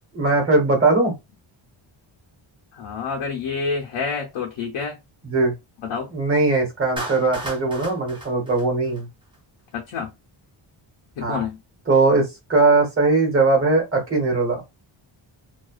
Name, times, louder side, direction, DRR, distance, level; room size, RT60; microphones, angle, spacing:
voice 1, 0.1-1.1 5.2-5.5 6.1-9.1 11.2-11.4 11.9-14.6, right 3 dB, 25° right, 1.1 m, -20 dB
voice 2, 2.7-5.0 5.8-6.1 9.7-10.1 11.2-11.6, left 5 dB, 80° left, 0.7 m, -28 dB
Clapping, 7.0-9.4, right 1 dB, 10° right, 0.6 m, -35 dB
2.4 x 2.2 x 2.3 m
wide cardioid pair, 145°, 50 cm